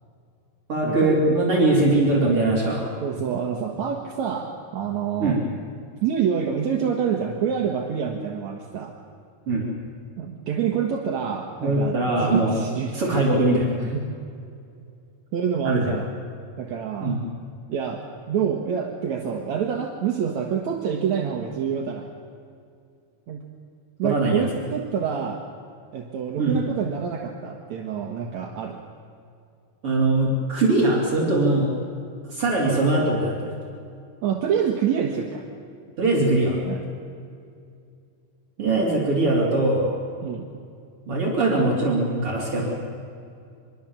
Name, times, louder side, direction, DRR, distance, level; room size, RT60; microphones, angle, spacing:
voice 1, 0.7-2.9 5.2-5.4 9.5-9.7 11.6-12.6 12.9-13.8 15.6-15.9 17.0-17.2 24.0-24.6 26.4-26.6 29.8-31.7 32.3-33.6 36.0-36.6 38.6-40.0 41.1-42.8, right 2 dB, 45° right, -3 dB, 4.4 m, -21 dB
voice 2, 3.0-5.4 6.0-8.9 10.2-13.2 13.8-14.0 15.3-16.1 16.6-17.2 17.7-22.1 23.3-23.4 24.0-25.4 25.9-28.8 34.2-35.5 36.7-36.8 40.2-40.5, right 7 dB, 70° right, 2 dB, 2.7 m, -27 dB
25.0 x 22.5 x 7.4 m, 2.4 s
omnidirectional pair, 3.5 m